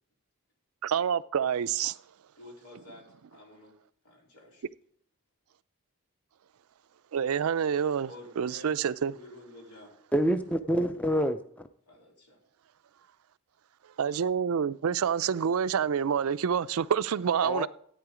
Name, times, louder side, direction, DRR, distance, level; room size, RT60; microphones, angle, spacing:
voice 1, 0.8-2.0 7.1-9.1 14.0-17.7, right 7 dB, 75° right, 0.4 m, -27 dB
voice 2, 2.4-3.1 3.3-3.7 4.0-4.6 8.0-8.8 9.1-9.9 11.9-12.4 17.4-17.7, left 1 dB, 85° left, 3.4 m, -49 dB
voice 3, 10.1-11.7 17.4-17.7, equal, 5° left, 0.5 m, -27 dB
14.0 x 9.0 x 4.9 m
head